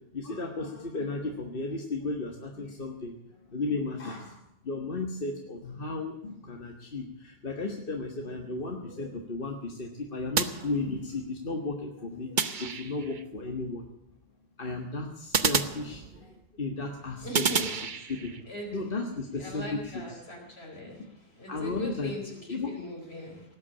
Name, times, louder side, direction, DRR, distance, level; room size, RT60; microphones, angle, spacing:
voice 1, 0.1-13.8 14.6-17.4 17.7-17.8 18.1-18.3 18.7-20.2 21.5-22.1 22.5-22.7, left 3 dB, 60° left, 2 dB, 1.7 m, -34 dB
sound 1, 10.4-11.3 12.4-13.2 15.3-16.5 17.3-18.4, right 6 dB, 50° right, 1.0 m, -30 dB
voice 2, 17.2-17.7 18.5-18.7 19.4-21.0 21.4-23.4, left 1 dB, 85° left, 0 dB, 4.7 m, -40 dB
18.5 x 8.6 x 8.4 m, 0.83 s
omnidirectional pair, 1.0 m